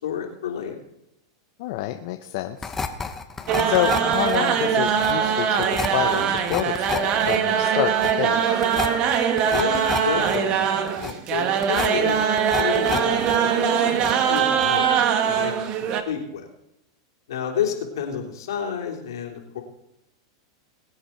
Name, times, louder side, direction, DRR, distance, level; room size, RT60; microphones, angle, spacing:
voice 1, 0.0-0.8 9.5-15.0 15.3-16.5 17.3-19.6, left 8 dB, 80° left, 0 dB, 3.4 m, -30 dB
voice 2, 1.6-2.7 3.6-8.6, left 14 dB, 60° left, 6 dB, 0.9 m, -28 dB
sound 1, 2.6-13.4 13.6-14.4 14.6-14.8, left 5 dB, 15° left, 1.1 m, -31 dB
sound 2, 3.5-16.0, right 8 dB, 45° right, 1.4 m, -22 dB
21.5 x 8.7 x 4.6 m, 0.86 s
hypercardioid pair, 125°, 2 cm